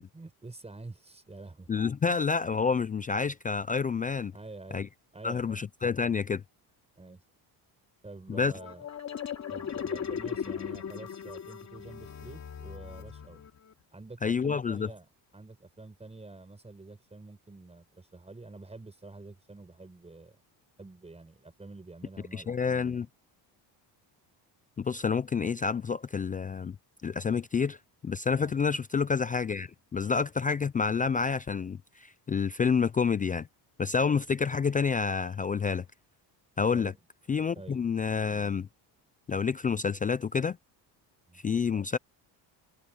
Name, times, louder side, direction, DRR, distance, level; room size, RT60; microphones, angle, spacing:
voice 1, 0.0-1.7 2.1-2.2 4.3-4.9 5.1-5.6 7.0-7.2 8.0-8.9 9.5-13.4 13.9-20.4 20.8-23.0 28.3-28.5 36.7-37.0 37.6-37.8 41.3-41.4, right 3 dB, 15° right, 5.9 m, -47 dB
voice 2, 1.7-4.3 4.7-4.9 5.2-6.4 8.3-8.5 14.2-14.9 22.3-23.1 24.8-26.8 27.0-27.8 28.0-33.5 33.8-35.8 36.6-36.9 37.3-38.7 39.3-40.6 41.4-42.0, left 5 dB, 20° left, 0.3 m, -28 dB
sound 1, 8.3-13.7, left 8 dB, 40° left, 2.7 m, -38 dB
cardioid pair, 130°, 43 cm